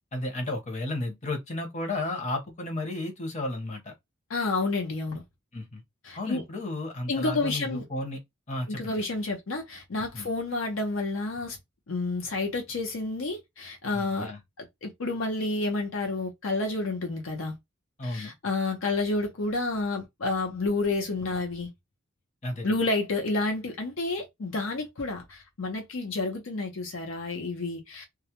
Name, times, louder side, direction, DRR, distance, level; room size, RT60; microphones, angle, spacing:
voice 1, 0.1-3.9 5.5-5.8 6.2-8.2 8.5-9.0 10.1-10.3 13.9-14.4 18.0-18.3 22.4-22.8, left 2 dB, 35° left, 0.8 m, -33 dB
voice 2, 4.3-5.2 6.0-6.4 7.1-7.8 8.7-11.6 11.9-14.3 14.6-17.6 18.0-21.7 22.6-28.1, left 3 dB, 70° left, 0.6 m, -30 dB
2.3 x 2.0 x 2.8 m
head